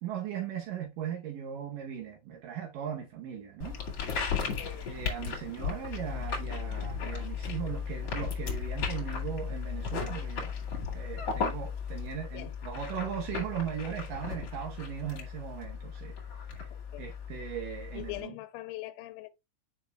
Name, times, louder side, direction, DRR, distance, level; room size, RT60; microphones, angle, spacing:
voice 1, 0.0-3.8 4.9-10.5 10.9-16.2 17.0-18.3, right 9 dB, 85° right, 1.9 m, -38 dB
sound 1, 3.6-18.2, left 6 dB, 45° left, 2.1 m, -36 dB
voice 2, 4.4-4.9 12.3-12.6 16.7-17.1 17.9-19.3, left 18 dB, 85° left, 3.1 m, -42 dB
9.3 x 5.7 x 2.3 m
omnidirectional pair, 5.4 m